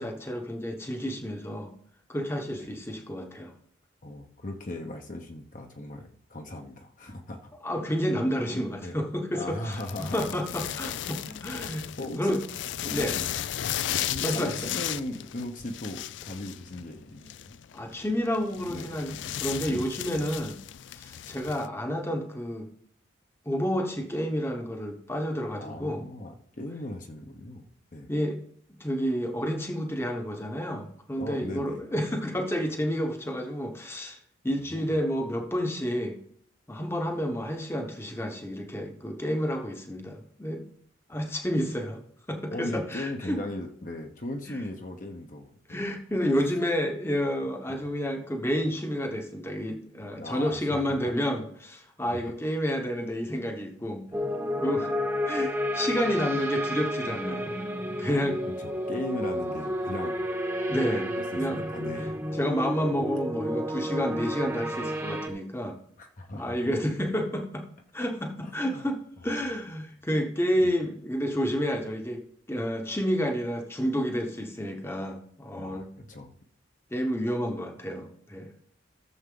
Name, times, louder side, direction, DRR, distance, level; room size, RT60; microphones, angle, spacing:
voice 1, 0.0-1.7 2.1-3.5 7.6-12.4 12.9-13.2 14.2-14.7 17.7-20.6 20.9-22.7 23.5-26.1 28.1-28.4 28.8-34.2 34.4-36.2 36.7-40.6 41.1-42.0 42.3-43.4 44.5-44.6 45.7-54.1 54.6-54.9 55.2-57.5 58.0-58.4 60.7-61.6 62.4-65.8 66.3-67.7 67.9-69.0 69.2-75.9 76.9-78.5, equal, 10° left, 4 dB, 1.0 m, -30 dB
voice 2, 4.0-7.5 8.8-8.9 9.3-10.2 11.3-11.7 12.0-12.4 12.8-13.3 14.1-17.6 18.7-18.9 19.7-19.9 25.6-28.1 31.2-31.8 34.7-34.8 41.1-41.2 42.5-45.9 47.7-47.8 50.2-51.1 52.1-52.3 58.1-58.2 58.6-60.2 61.3-62.1 66.0-66.6 68.4-68.9 69.3-69.4 75.5-76.3, left 1 dB, 40° left, 3 dB, 1.0 m, -38 dB
sound 1, 9.7-21.7, left 11 dB, 65° left, 0.4 m, -35 dB
sound 2, 54.1-65.3, equal, 10° right, 1.1 m, -31 dB
14.5 x 7.1 x 3.8 m, 0.66 s
head